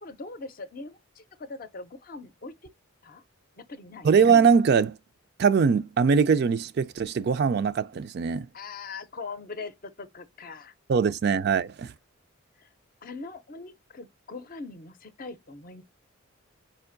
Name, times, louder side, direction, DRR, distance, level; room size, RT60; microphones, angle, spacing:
voice 1, 0.0-2.7 3.0-3.2 3.6-4.1 8.5-10.7 12.6-12.7 13.0-15.8, left 3 dB, 40° left, 0.5 m, -41 dB
voice 2, 4.0-5.0 5.4-8.5 10.9-11.9, right 6 dB, 50° right, 0.3 m, -22 dB
4.5 x 2.5 x 2.5 m
head